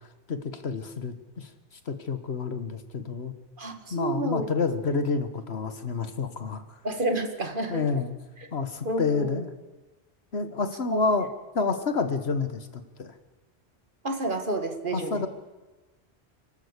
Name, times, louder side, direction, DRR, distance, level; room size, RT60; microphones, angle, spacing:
voice 1, 0.3-1.5 1.9-3.3 3.9-6.6 7.7-8.1 8.5-9.5 10.3-11.3 11.5-13.1 14.9-15.3, left 4 dB, 70° left, 9 dB, 1.7 m, -29 dB
voice 2, 3.6-4.5 6.8-7.8 8.8-9.4 10.9-11.0 14.0-15.2, right 2 dB, 50° right, 5 dB, 2.1 m, -29 dB
29.0 x 12.5 x 8.2 m, 1.2 s
omnidirectional pair, 1.1 m